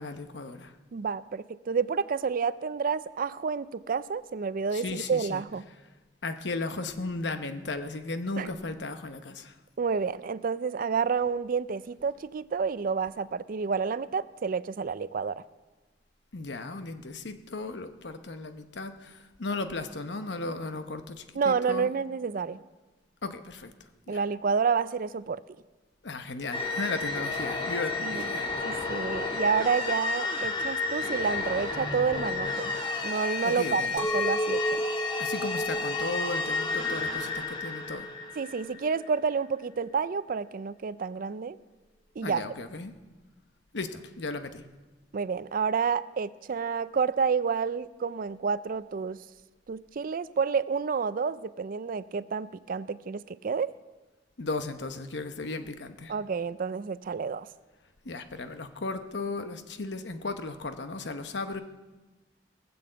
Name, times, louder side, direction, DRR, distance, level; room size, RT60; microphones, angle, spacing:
voice 1, 0.0-0.7 4.7-5.4 6.2-9.6 16.3-21.9 23.2-23.7 24.1-24.2 26.0-28.5 33.4-34.1 35.2-38.1 42.2-42.9 43.7-44.6 54.4-56.1 58.0-61.6, left 3 dB, 70° left, 8 dB, 0.9 m, -35 dB
voice 2, 0.9-5.6 8.4-8.5 9.8-15.4 21.4-22.6 24.1-25.4 28.0-28.2 28.6-32.7 33.0-34.8 38.4-41.6 42.2-42.4 45.1-49.2 49.7-53.7 56.1-57.5, right 5 dB, 50° right, 16 dB, 0.4 m, -29 dB
sound 1, 26.5-39.0, left 3 dB, 30° left, 1.6 m, -32 dB
Chink clink, 34.0-39.1, right 1 dB, 15° left, 0.5 m, -34 dB
19.0 x 7.0 x 7.7 m, 1.2 s
head